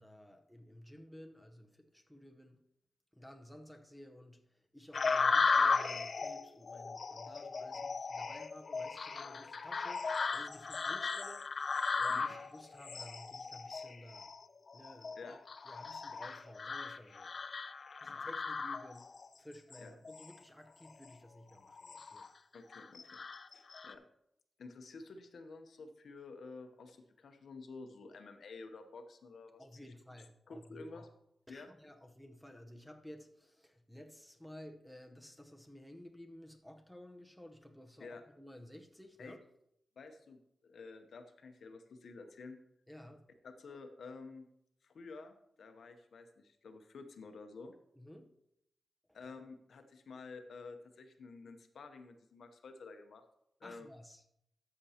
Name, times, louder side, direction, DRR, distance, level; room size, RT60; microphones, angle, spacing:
voice 1, 0.0-2.7 3.1-14.3 14.7-15.2 15.6-17.3 18.0-19.1 19.4-22.3 29.6-31.1 31.5-39.4 42.9-43.3 48.0-48.4 53.6-54.2, left 1 dB, ahead, 0.8 m, -54 dB
sound 1, 4.9-19.3 19.7-20.3 20.9-21.1 21.6-22.3 22.7-23.9, left 4 dB, 50° left, 0.4 m, -36 dB
voice 2, 22.5-23.2 23.5-24.1 24.6-29.6 30.5-31.1 31.5-31.7 38.0-38.2 39.2-39.4 40.0-42.6 43.4-44.5 44.8-47.7 49.1-53.2 53.6-53.9, left 3 dB, 75° left, 0.8 m, -51 dB
13.0 x 6.8 x 2.9 m
wide cardioid pair, 105°, 0 cm